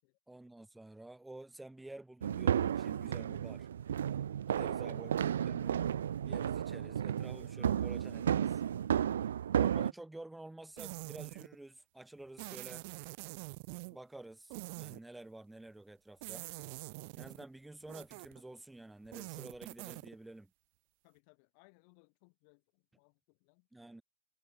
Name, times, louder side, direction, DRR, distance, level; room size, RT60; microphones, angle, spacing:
voice 1, 0.3-3.7 4.5-5.8 6.2-8.6 9.5-12.9 13.9-16.5 17.2-20.5 23.7-24.0, right 2 dB, 5° right, 6.0 m, -50 dB
sound 1, 2.2-9.9, right 9 dB, 65° right, 0.4 m, -33 dB
voice 2, 4.5-5.3 21.0-23.7, left 40 dB or more, 45° left, 7.3 m, -67 dB
sound 2, 10.8-11.5 12.4-14.0 14.5-15.0 16.2-17.4 17.9-18.4 19.0-20.1, right 30 dB, 45° right, 0.8 m, -45 dB
figure-of-eight pair, 90°, 0 cm